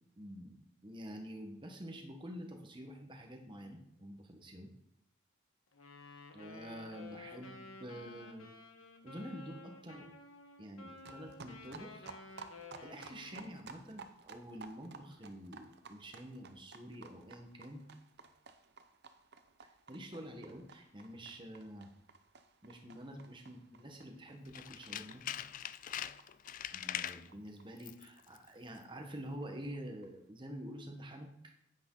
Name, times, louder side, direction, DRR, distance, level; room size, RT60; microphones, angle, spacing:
voice 1, 0.2-4.7 6.3-8.5 9.0-10.1 10.6-12.1 12.5-17.9 19.9-21.9 22.6-25.2 26.7-31.5, equal, 25° right, 3 dB, 1.4 m, -48 dB
Wind instrument woodwind instrument, 5.7-13.7, left 3 dB, 85° left, 1.5 m, -53 dB
sound 1, 11.0-28.2 28.5-28.6 28.8-28.9 29.1-29.2 29.4-30.1, right 4 dB, 55° right, 0.7 m, -56 dB
Tools, 24.5-27.3 27.8-28.1 28.4-28.5, left 10 dB, 40° left, 0.3 m, -42 dB
9.9 x 8.8 x 4.0 m, 0.75 s
head